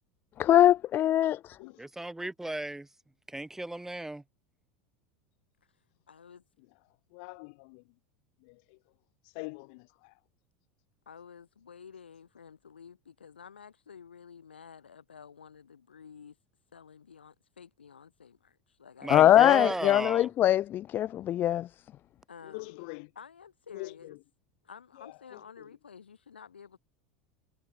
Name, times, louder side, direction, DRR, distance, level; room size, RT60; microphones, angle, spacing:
voice 1, 0.4-1.6 19.1-21.7, left 12 dB, 40° left, 0.4 m, -22 dB
voice 2, 1.8-2.9 3.3-4.2 19.0-20.3, right 1 dB, 5° right, 1.3 m, -35 dB
voice 3, 6.1-6.4 11.0-16.4 16.7-19.2 19.5-19.7 22.3-22.7 23.1-24.2 24.6-26.8, left 7 dB, 90° left, 1.6 m, -51 dB
voice 4, 7.1-8.0 8.4-8.9 9.2-10.2 22.4-23.1 23.7-24.2 24.9-25.7, left 33 dB, 60° left, 5.7 m, -45 dB
hypercardioid pair, 85°, 6 cm